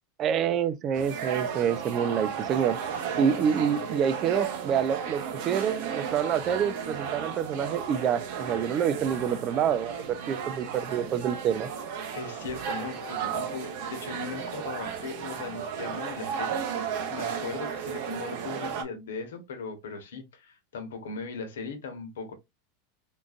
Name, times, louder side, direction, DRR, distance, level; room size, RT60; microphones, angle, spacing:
voice 1, 0.2-2.8 3.2-9.9 10.3-11.7, right 8 dB, 40° right, 0.4 m, -27 dB
sound 1, 0.9-18.8, right 7 dB, 65° right, 0.9 m, -34 dB
voice 2, 2.9-3.9 12.1-22.3, left 4 dB, 85° left, 1.0 m, -39 dB
3.7 x 2.5 x 2.4 m
hypercardioid pair, 105°, 0 cm